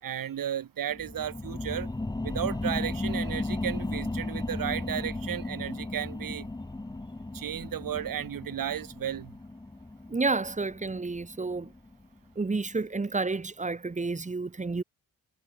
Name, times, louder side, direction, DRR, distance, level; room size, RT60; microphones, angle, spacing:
voice 1, 0.0-1.9 2.2-6.5 7.3-9.3, right 10 dB, 75° right, 6.2 m, -34 dB
sound 1, 0.9-12.1 12.5-12.6, left 2 dB, 10° left, 2.7 m, -35 dB
voice 2, 10.1-11.7 12.4-14.8, right 3 dB, 20° right, 5.5 m, -30 dB
wide cardioid pair, 175°, 34 cm